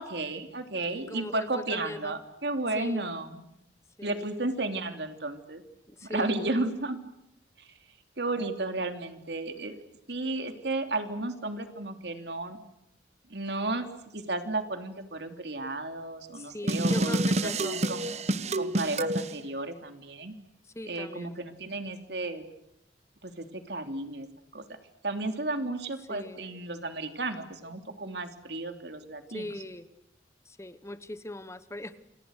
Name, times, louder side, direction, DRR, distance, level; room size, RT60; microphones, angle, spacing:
voice 1, 0.0-3.4 4.0-5.6 6.0-7.0 7.6-7.7 8.2-9.8 10.1-12.6 13.3-13.9 14.1-18.1 18.5-20.3 20.9-22.4 23.2-24.3 24.5-24.6 25.0-29.5, right 2 dB, 65° right, 7 dB, 3.2 m, -33 dB
voice 2, 0.9-2.1 2.7-3.0 4.0-4.3 5.9-6.4 9.1-9.2 16.3-17.8 20.7-21.4 26.1-26.4 29.3-29.9 30.4-32.0, left 1 dB, 15° left, 12 dB, 1.1 m, -40 dB
sound 1, 16.7-19.3, right 1 dB, 35° right, 1.1 m, -28 dB
29.0 x 28.0 x 6.6 m, 0.83 s
head